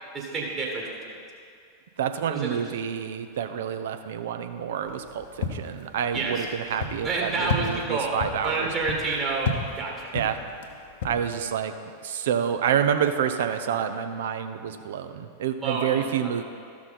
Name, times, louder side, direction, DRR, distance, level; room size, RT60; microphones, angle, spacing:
voice 1, 0.1-1.1 2.3-2.5 6.1-6.5 7.0-9.5 9.8-9.9 15.6-16.1, right 3 dB, 25° right, -3 dB, 1.9 m, -29 dB
voice 2, 2.0-8.7 10.1-10.4 11.0-11.7 12.0-16.4, right 8 dB, 60° right, 8 dB, 0.6 m, -28 dB
sound 1, 4.8-11.6, left 4 dB, 55° left, 0.9 m, -34 dB
13.5 x 5.9 x 4.2 m, 2.4 s
figure-of-eight pair, 90°, 0 cm